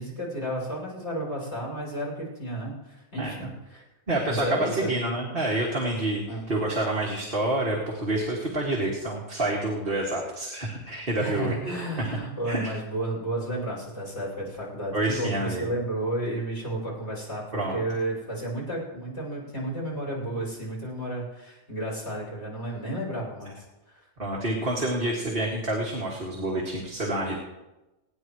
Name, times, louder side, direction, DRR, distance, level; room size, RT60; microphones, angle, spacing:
voice 1, 0.0-3.8 4.3-4.9 6.3-6.4 11.2-23.6 23.9-24.1, right 1 dB, 70° left, -6 dB, 7.4 m, -32 dB
voice 2, 3.2-3.5 4.1-12.2 12.5-12.7 14.9-15.7 17.5-17.8 24.2-27.4, right 1 dB, 50° right, -3 dB, 2.4 m, -28 dB
27.5 x 10.5 x 3.2 m, 1.0 s
omnidirectional pair, 1.2 m